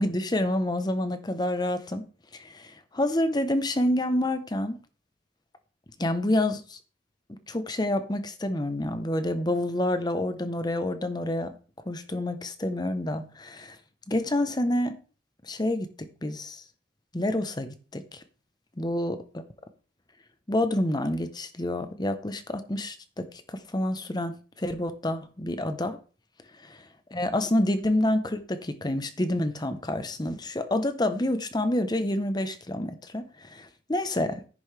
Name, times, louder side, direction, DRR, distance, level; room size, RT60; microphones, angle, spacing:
voice 1, 0.0-2.0 2.3-4.8 6.0-6.8 7.5-11.5 11.9-13.8 14.1-15.0 15.4-16.6 17.1-18.2 18.8-19.2 20.5-26.0 26.7-26.8 27.1-34.4, left 1 dB, 20° left, 0.8 m, -28 dB
10.5 x 10.0 x 3.3 m
head